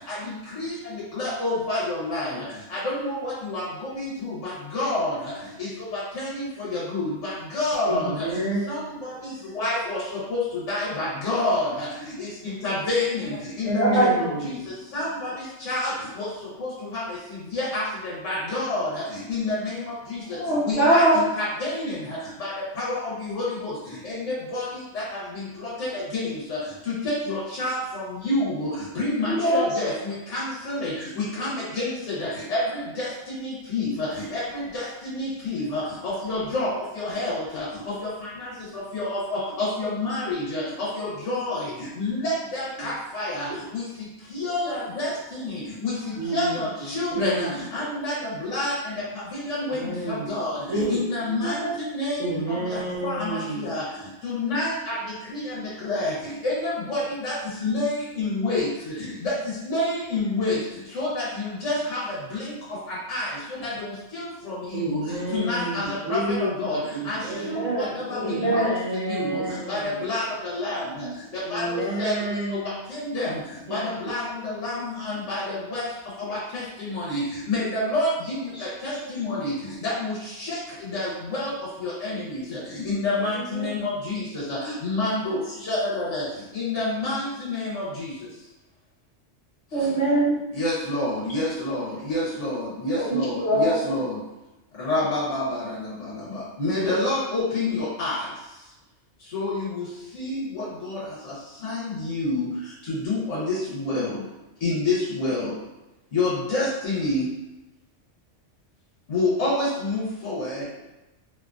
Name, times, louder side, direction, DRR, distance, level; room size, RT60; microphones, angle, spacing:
voice 1, 0.5-2.4 2.7-5.1 5.6-8.2 8.7-10.0 10.3-10.4 10.7-11.9 12.2-14.2 14.9-15.3 15.6-15.9 16.2-16.3 16.6-17.0 17.5-18.9 19.3-19.8 20.6-22.5 22.8-23.7 24.0-24.7 24.9-25.2 25.6-26.6 27.0-28.7 28.9-30.9 31.2-33.1 33.4-36.7 37.0-37.9 38.4-38.5 38.9-41.6 42.0-43.5 43.7-43.8 44.3-45.5 45.8-45.9 46.3-48.9 49.5-49.8 50.1-51.6 51.9-53.8 54.2-54.9 55.3-56.1 56.4-57.3 57.6-58.9 59.2-59.3 59.6-60.6 60.9-62.0 62.3-62.5 63.1-63.3 63.6-63.7 64.1-65.0 65.3-66.8 67.0-67.2 67.4-68.7 69.1-71.1 71.5-72.1 72.5-72.6 72.9-73.4 73.7-75.9 76.3-77.2 77.5-78.3 78.8-79.5 79.8-80.1 80.4-80.6 80.9-81.5 81.8-82.6 82.8-86.2 86.5-88.1 90.5-94.2 94.8-95.9 96.3-98.2 99.3-99.8 100.1-101.0 101.6-102.5 102.9-104.2 104.6-105.5 106.1-107.2 109.1-110.6, left 2 dB, 80° left, -8 dB, 1.2 m, -28 dB
voice 2, 7.9-8.6 13.7-14.7 42.8-42.9 46.2-47.9 49.6-50.4 50.7-51.0 52.2-53.8 64.7-67.2 68.2-70.0 71.4-72.7 73.7-73.8, right 1 dB, 60° right, -7 dB, 0.4 m, -30 dB
voice 3, 13.8-14.3 20.3-21.3 29.3-29.6 51.3-51.7 67.2-68.7 71.0-71.1 78.6-78.7 78.9-79.0 83.3-83.7 89.7-90.4 93.0-93.9, right 1 dB, 35° left, -8 dB, 0.9 m, -23 dB
2.8 x 2.2 x 2.4 m, 0.99 s
omnidirectional pair, 1.2 m